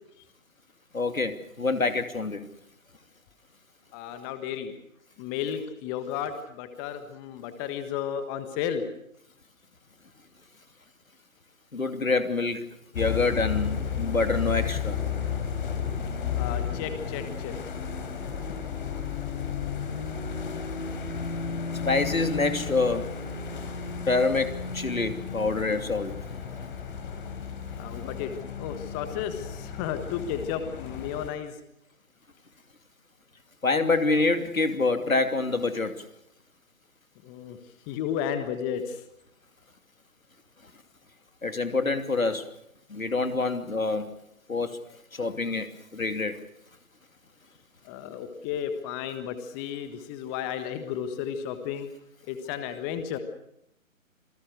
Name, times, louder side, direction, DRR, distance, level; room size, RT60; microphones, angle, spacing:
voice 1, 0.9-2.4 11.7-15.0 21.9-23.1 24.1-26.1 33.6-36.0 41.4-42.5 42.9-44.1 44.5-44.8 45.1-46.4, left 3 dB, 80° left, 8 dB, 2.9 m, -26 dB
voice 2, 3.9-4.7 5.2-8.9 16.4-17.7 27.8-28.3 28.5-31.6 37.2-37.6 37.9-39.0 44.9-45.0 47.8-51.9 52.3-53.2, left 8 dB, 15° left, 9 dB, 1.4 m, -33 dB
sound 1, 12.9-31.3, left 7 dB, 40° left, 4.1 m, -33 dB
27.0 x 19.0 x 6.6 m, 0.78 s
figure-of-eight pair, 140°, 41 cm